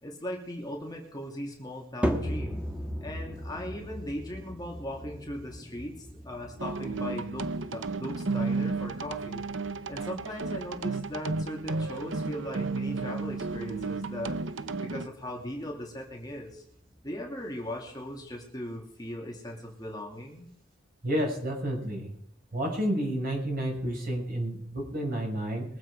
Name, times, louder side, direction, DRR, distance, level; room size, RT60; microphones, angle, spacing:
voice 1, 0.0-2.6 3.0-9.4 9.9-14.4 14.8-16.6 17.0-20.5, left 1 dB, 20° left, -1 dB, 2.7 m, -38 dB
sound 1, 2.0-18.5, equal, 5° right, 1.6 m, -39 dB
sound 2, 6.6-15.1, right 3 dB, 70° right, 0.8 m, -33 dB
voice 2, 21.0-22.1 22.5-25.7, equal, 50° right, 0 dB, 5.8 m, -30 dB
22.5 x 8.1 x 4.9 m, 0.69 s
head